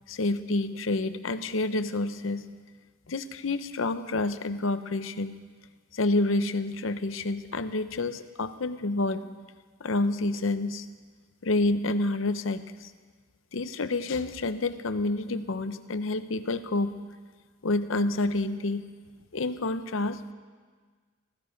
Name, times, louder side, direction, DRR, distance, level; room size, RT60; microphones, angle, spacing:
voice 1, 0.1-2.4 3.1-5.3 5.9-9.2 9.8-10.8 11.4-12.9 13.5-17.0 17.6-18.8 19.3-20.3, left 2 dB, 75° left, 11 dB, 0.8 m, -28 dB
17.5 x 15.5 x 5.2 m, 1.5 s
head